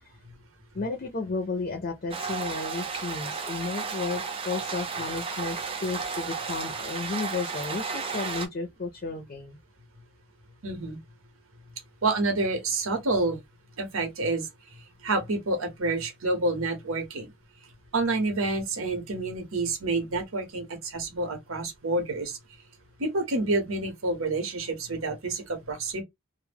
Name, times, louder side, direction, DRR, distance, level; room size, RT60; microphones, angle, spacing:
voice 1, 0.7-9.6, left 3 dB, 45° left, 0.5 m, -33 dB
sound 1, 2.1-8.5, right 5 dB, 25° right, 0.4 m, -33 dB
voice 2, 10.6-11.0 12.0-13.4 13.8-14.5 15.0-17.3 17.9-22.4 23.0-26.0, right 2 dB, 90° right, 0.9 m, -28 dB
2.2 x 2.0 x 3.3 m
head